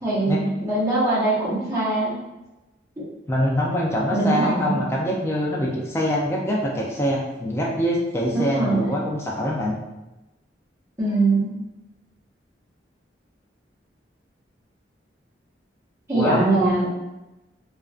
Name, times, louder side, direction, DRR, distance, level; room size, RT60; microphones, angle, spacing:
voice 1, 0.0-2.2 3.0-3.1 4.1-4.8 8.3-8.9 11.0-11.5 16.1-16.9, right 2 dB, 15° right, -9 dB, 0.7 m, -22 dB
voice 2, 3.3-9.7 16.1-16.5, equal, 15° left, -4 dB, 0.3 m, -24 dB
2.4 x 2.2 x 2.4 m, 1.0 s
head